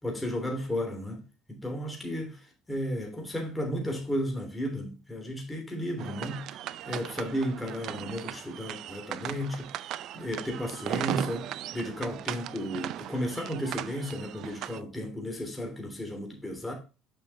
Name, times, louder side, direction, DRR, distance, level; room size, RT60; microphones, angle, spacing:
voice 1, 0.0-6.4 6.9-16.7, equal, 10° left, 3.2 m, -34 dB
sound 1, 6.0-14.8, right 12 dB, 60° right, 0.4 m, -37 dB
6.7 x 6.2 x 3.4 m
supercardioid pair, 90°, 0 cm